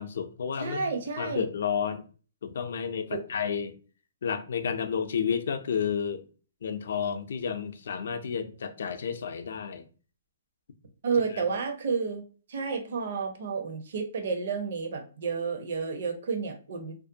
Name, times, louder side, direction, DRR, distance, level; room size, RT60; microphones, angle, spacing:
voice 1, 0.0-0.9 1.2-2.0 2.4-3.8 4.2-6.3 6.6-9.8 11.3-11.4, left 7 dB, 70° left, 0.4 m, -31 dB
voice 2, 0.6-1.5 3.1-3.2 11.0-12.2 12.5-17.0, right 5 dB, 60° right, 0.6 m, -31 dB
2.5 x 2.2 x 2.6 m
hypercardioid pair, 155°, 0 cm